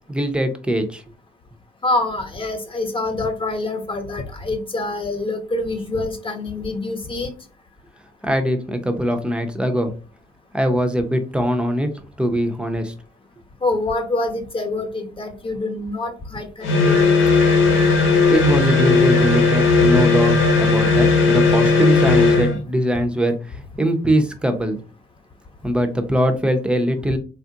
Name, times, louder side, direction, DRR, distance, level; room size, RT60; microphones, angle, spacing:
voice 1, 0.1-1.0 8.2-9.9 10.5-11.9 12.2-12.9 18.3-24.8 25.6-27.2, equal, 5° right, 6 dB, 0.6 m, -21 dB
voice 2, 1.8-7.3 13.6-17.1 27.1-27.2, left 2 dB, 25° left, 4 dB, 1.0 m, -26 dB
sound 1, 16.6-22.6, left 4 dB, 85° left, 1.0 m, -16 dB
3.5 x 2.4 x 2.8 m, 0.35 s
cardioid pair, 90°, 20 cm